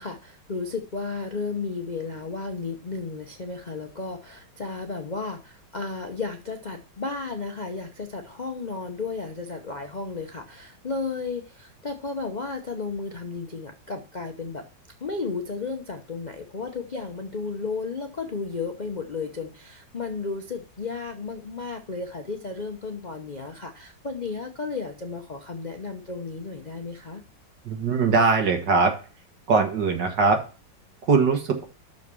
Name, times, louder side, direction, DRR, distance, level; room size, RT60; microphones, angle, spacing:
voice 1, 0.0-14.7 15.0-27.2, left 4 dB, 45° left, 3 dB, 0.6 m, -33 dB
voice 2, 27.6-29.0 29.5-30.4 31.1-31.6, right 4 dB, 70° right, 3 dB, 2.3 m, -21 dB
6.6 x 5.3 x 6.7 m, 0.35 s
omnidirectional pair, 1.9 m